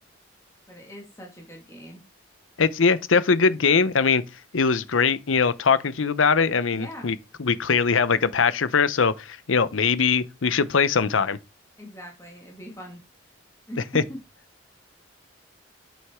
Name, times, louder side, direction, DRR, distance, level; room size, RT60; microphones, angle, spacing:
voice 1, 0.7-2.0 6.7-7.1 11.8-13.0 13.7-14.2, equal, 15° left, 1.9 m, -40 dB
voice 2, 2.6-4.2 4.5-11.4 13.9-14.0, left 5 dB, 80° left, 0.7 m, -21 dB
8.4 x 6.4 x 3.6 m
head